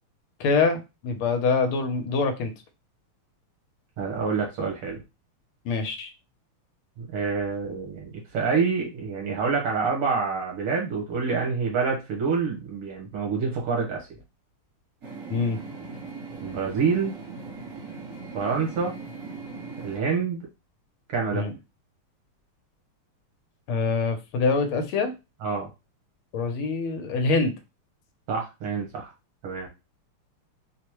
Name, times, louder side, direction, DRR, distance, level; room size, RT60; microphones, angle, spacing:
voice 1, 0.4-2.5 5.6-6.1 15.3-15.6 21.3-21.5 23.7-25.1 26.3-27.5, left 4 dB, 75° left, 6 dB, 1.6 m, -25 dB
voice 2, 4.0-5.0 7.0-14.2 16.4-17.2 18.3-19.0 19.8-20.4 21.1-21.5 25.4-25.7 28.3-29.1 29.4-29.7, right 5 dB, 90° right, -1 dB, 2.2 m, -27 dB
sound 1, 15.0-20.0, right 4 dB, 45° right, 1.2 m, -39 dB
5.0 x 2.1 x 3.0 m, 0.26 s
omnidirectional pair, 2.4 m